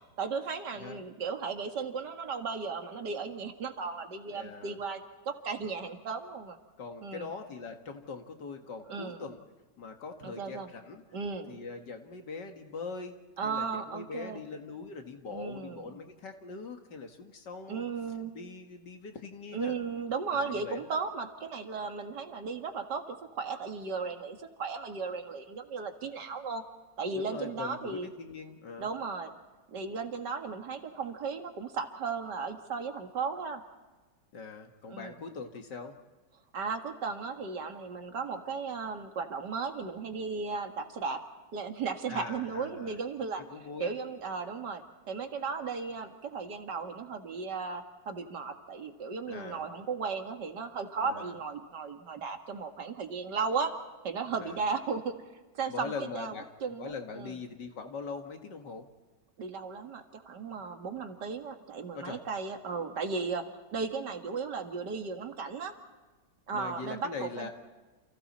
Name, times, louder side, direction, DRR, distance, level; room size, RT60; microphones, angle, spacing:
voice 1, 0.2-6.6 7.0-7.3 8.9-9.2 10.2-10.7 11.1-11.5 13.4-14.4 15.3-15.9 17.7-18.3 19.5-26.6 27.0-28.1 28.8-29.3 29.7-33.6 34.9-35.1 36.5-41.2 41.5-43.4 43.8-53.7 54.0-55.1 55.5-56.3 56.6-57.3 59.4-65.8 66.5-67.5, right 5 dB, 70° right, 6 dB, 2.4 m, -35 dB
voice 2, 4.3-4.8 6.8-9.4 9.8-11.0 11.5-13.2 13.4-17.8 18.3-19.7 20.3-20.9 27.2-28.9 34.3-36.0 42.1-43.0 43.4-43.9 49.3-49.6 51.0-51.4 54.4-54.6 55.7-56.5 56.8-58.9 61.9-62.2 66.5-67.5, left 4 dB, 75° left, 5 dB, 2.3 m, -42 dB
30.0 x 28.5 x 4.3 m, 1.3 s
omnidirectional pair, 1.9 m